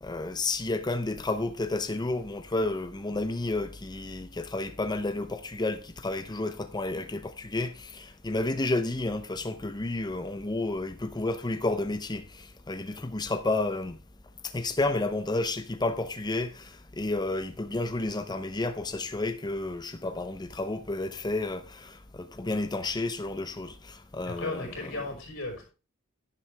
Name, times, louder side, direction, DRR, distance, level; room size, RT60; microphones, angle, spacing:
voice 1, 0.0-14.0 14.4-25.0, left 2 dB, 20° left, 0.6 m, -31 dB
voice 2, 24.2-25.7, left 2 dB, 65° left, 5.0 m, -35 dB
10.5 x 10.0 x 3.4 m
head